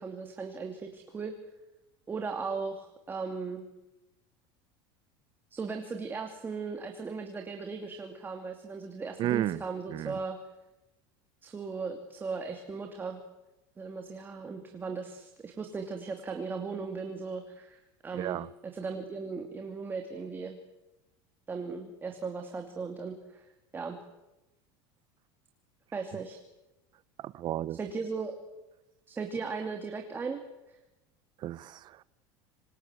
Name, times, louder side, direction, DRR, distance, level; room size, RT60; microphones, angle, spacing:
voice 1, 0.0-1.3 2.1-3.7 5.5-10.4 11.4-13.2 13.8-20.6 21.5-23.5 23.7-24.0 25.9-26.4 27.7-28.4 29.1-30.4 30.7-30.8, right 4 dB, 15° right, 2.6 m, -37 dB
voice 2, 9.2-9.6 9.9-10.2 18.1-18.5 27.2-27.8 31.4-31.8, right 13 dB, 40° right, 1.0 m, -32 dB
26.5 x 26.0 x 8.3 m
supercardioid pair, 150°, 12 cm